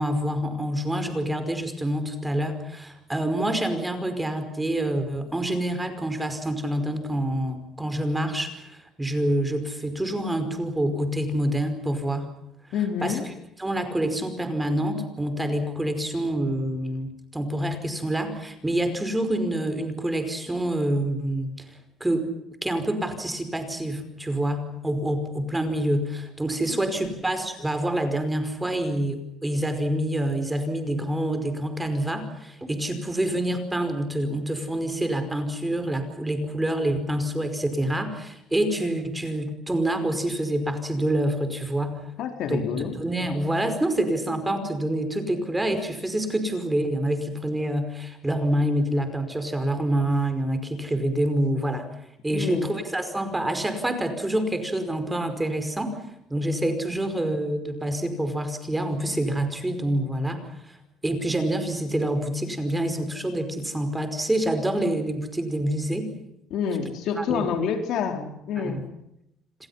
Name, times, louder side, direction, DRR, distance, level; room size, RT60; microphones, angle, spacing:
voice 1, 0.0-12.3 13.0-13.2 13.6-22.3 22.6-42.0 42.5-51.9 52.2-55.9 56.3-60.8 61.0-66.1 67.2-67.5 68.6-68.8, right 1 dB, 10° right, 8 dB, 5.1 m, -27 dB
voice 2, 12.7-13.2 42.2-43.0 52.3-52.7 66.5-68.8, left 7 dB, 70° left, 5 dB, 4.6 m, -28 dB
29.0 x 26.0 x 5.8 m, 0.81 s
cardioid pair, 130°, 0 cm